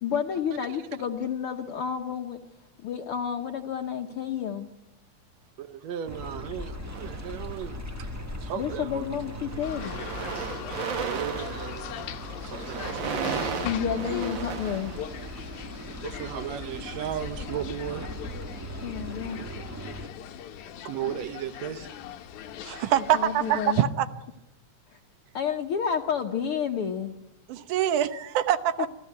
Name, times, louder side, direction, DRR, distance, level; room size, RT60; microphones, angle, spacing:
voice 1, 0.0-2.4 2.8-4.7 8.6-10.0 13.6-14.9 18.8-19.4 23.1-23.8 24.9-25.0 25.3-27.2 28.8-28.9, left 7 dB, 60° left, 1.6 m, -30 dB
voice 2, 0.5-0.8 5.6-8.1 8.4-9.1 10.8-12.1 12.5-13.0 16.0-18.1 20.9-21.9, right 9 dB, 70° right, 2.2 m, -36 dB
sound 1, 6.1-20.1, left 1 dB, 10° right, 0.8 m, -39 dB
sound 2, 6.9-7.9 8.6-8.8 9.1-15.6, right 6 dB, 50° right, 1.6 m, -35 dB
sound 3, 9.6-23.9, left 10 dB, 80° left, 2.4 m, -41 dB
voice 3, 22.6-24.1 27.5-28.9, right 11 dB, 90° right, 2.5 m, -24 dB
26.0 x 16.0 x 9.4 m
omnidirectional pair, 3.4 m